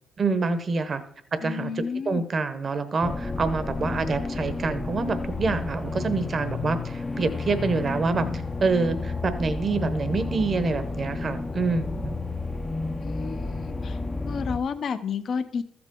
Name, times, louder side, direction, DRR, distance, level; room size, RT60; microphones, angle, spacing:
voice 1, 0.2-1.0 1.4-1.7 2.1-8.3 8.6-12.1, right 4 dB, 40° right, 11 dB, 1.0 m, -26 dB
voice 2, 1.4-2.2 13.0-15.6, left 6 dB, 55° left, 10 dB, 0.8 m, -31 dB
sound 1, 3.0-14.6, left 3 dB, 20° left, 0.6 m, -31 dB
13.0 x 7.9 x 3.8 m, 0.68 s
cardioid pair, 90°, 0 cm